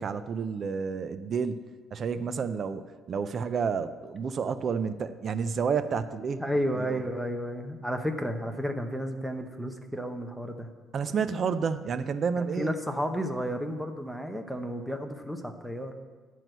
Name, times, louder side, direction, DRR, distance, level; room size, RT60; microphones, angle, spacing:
voice 1, 0.0-1.6 1.9-6.4 6.7-7.0 10.9-12.7, right 6 dB, 40° right, 11 dB, 0.4 m, -30 dB
voice 2, 6.4-10.7 12.4-15.9, equal, ahead, 5 dB, 0.8 m, -32 dB
11.0 x 4.6 x 7.8 m, 1.4 s
cardioid pair, 150°, 0 cm